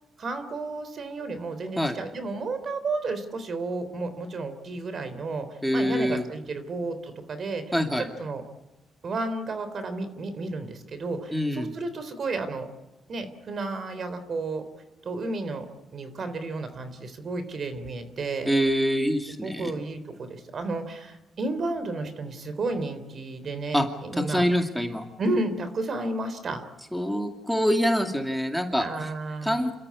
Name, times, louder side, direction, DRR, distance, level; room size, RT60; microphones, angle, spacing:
voice 1, 0.2-7.6 8.0-8.4 9.0-12.7 13.1-14.6 15.0-15.7 15.9-18.5 19.4-24.4 25.2-26.6 28.8-29.7, right 3 dB, 50° right, 10 dB, 3.6 m, -32 dB
voice 2, 5.6-6.2 7.7-8.1 11.3-11.7 18.5-19.7 23.7-23.9 24.1-25.0 26.9-29.1 29.4-29.7, equal, ahead, 5 dB, 2.3 m, -25 dB
28.0 x 13.5 x 9.7 m, 1.0 s
cardioid pair, 90°, 0 cm